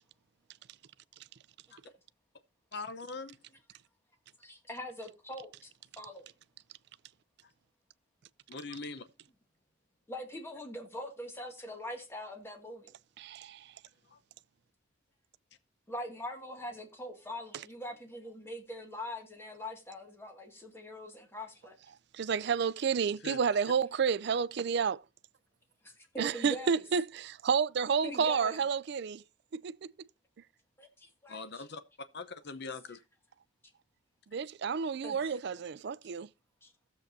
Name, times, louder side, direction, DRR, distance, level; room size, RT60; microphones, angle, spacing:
voice 1, 2.7-3.4 8.5-9.1 14.1-14.2 23.2-23.4 31.3-33.0, left 3 dB, 55° left, 0.8 m, -42 dB
voice 2, 4.4-5.7 6.0-6.3 10.1-12.8 15.9-21.8 25.8-26.7 28.0-28.6 30.8-31.7 35.0-35.3 36.6-36.7, left 1 dB, 10° left, 2.0 m, -43 dB
voice 3, 13.2-13.6 22.1-25.0 26.2-29.2 29.5-29.8 34.3-36.3, right 6 dB, 55° right, 0.4 m, -30 dB
16.0 x 7.3 x 2.6 m
head